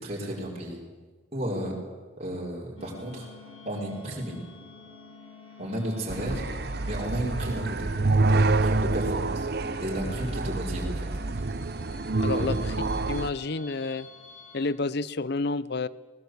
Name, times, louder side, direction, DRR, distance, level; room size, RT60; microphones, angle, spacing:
voice 1, 0.0-0.8 1.3-1.7 2.2-3.3 3.6-4.4 5.6-6.4 6.9-7.9 8.3-9.5 9.8-11.1 12.3-12.5, right 1 dB, 35° right, -3 dB, 5.1 m, -33 dB
sound 1, 2.8-14.6, left 3 dB, 90° left, 6.8 m, -47 dB
sound 2, 6.1-13.3, right 3 dB, 55° right, 0.7 m, -27 dB
voice 2, 12.2-12.6 13.1-14.1 14.5-15.9, left 3 dB, 55° left, 19 dB, 0.7 m, -29 dB
20.0 x 19.5 x 8.1 m, 1.4 s
head